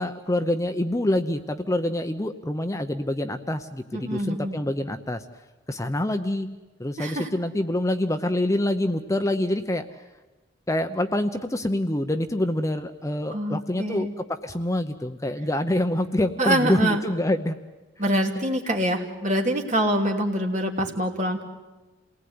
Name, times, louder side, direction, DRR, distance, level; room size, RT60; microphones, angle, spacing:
voice 1, 0.0-5.3 5.7-6.5 6.8-9.9 10.7-17.6 18.6-18.7, left 1 dB, 15° left, 8 dB, 0.8 m, -26 dB
voice 2, 3.9-4.6 7.0-7.3 13.3-14.1 16.4-17.0 18.0-21.4, right 1 dB, 40° right, 2 dB, 2.9 m, -25 dB
28.5 x 19.0 x 9.6 m, 1.2 s
head